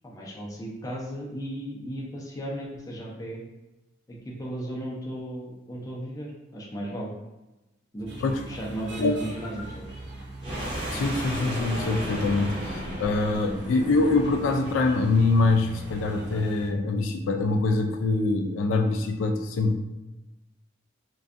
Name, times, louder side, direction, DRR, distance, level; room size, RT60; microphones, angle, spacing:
voice 1, 0.0-3.4 4.1-7.1 7.9-8.1 8.5-9.9, right 1 dB, 20° left, -3 dB, 0.4 m, -35 dB
sound 1, 8.1-16.7, right 1 dB, 60° right, 0.5 m, -40 dB
sound 2, 10.4-14.7, equal, 25° right, 0.8 m, -34 dB
voice 2, 10.9-19.8, left 3 dB, 90° left, 4 dB, 0.3 m, -24 dB
2.5 x 2.2 x 2.4 m, 1.0 s
head